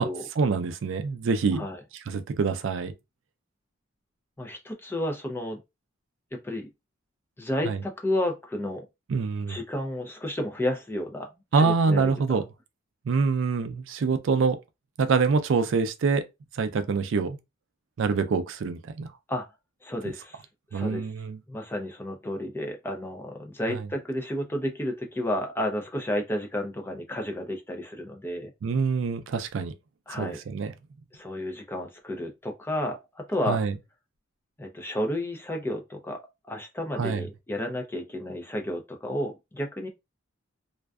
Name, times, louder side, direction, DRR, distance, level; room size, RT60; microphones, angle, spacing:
voice 1, 0.4-1.7 2.1-2.9 7.6-7.8 9.1-9.6 11.5-12.4 13.1-14.6 15.0-16.2 16.5-17.4 18.0-19.1 20.7-21.4 28.6-29.7 30.2-30.7 33.5-33.7 37.0-37.3, right 5 dB, 70° right, 0.4 m, -25 dB
voice 2, 4.4-5.6 6.3-6.7 7.4-8.8 9.5-12.4 19.3-19.5 19.8-20.4 20.7-21.1 21.5-28.5 30.1-30.4 31.1-33.6 34.6-36.2 36.5-39.9, left 1 dB, 10° left, 0.4 m, -32 dB
2.5 x 2.2 x 2.2 m
head